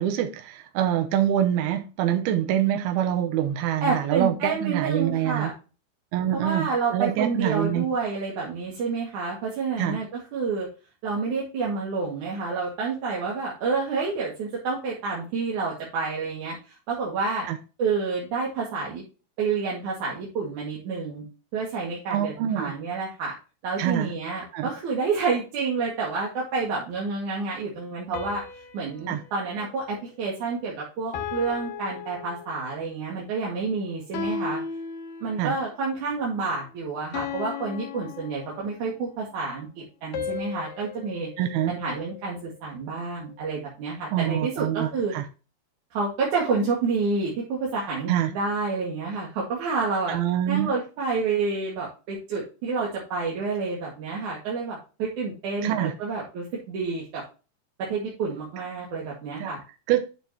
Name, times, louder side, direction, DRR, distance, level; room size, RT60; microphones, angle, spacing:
voice 1, 0.0-5.5 6.1-7.9 9.8-10.0 17.5-17.6 22.1-22.7 23.8-24.1 24.5-24.7 29.1-29.2 35.4-35.5 41.4-41.7 44.1-45.2 48.1-48.3 50.1-50.7 55.6-55.9 59.4-59.5 59.9-60.0, right 11 dB, 80° right, 2.8 m, -25 dB
voice 2, 3.8-5.5 6.3-10.7 11.0-17.5 17.8-19.0 19.4-21.2 21.5-23.3 23.6-28.4 28.7-34.6 35.2-41.3 41.7-45.1 45.9-50.2 50.5-57.2 57.8-59.6, right 4 dB, 55° right, 3.2 m, -29 dB
sound 1, 28.1-30.6 31.1-32.9 34.1-35.7 37.1-39.0 40.1-42.5, left 6 dB, 70° left, 2.8 m, -36 dB
9.3 x 6.5 x 2.9 m
omnidirectional pair, 4.5 m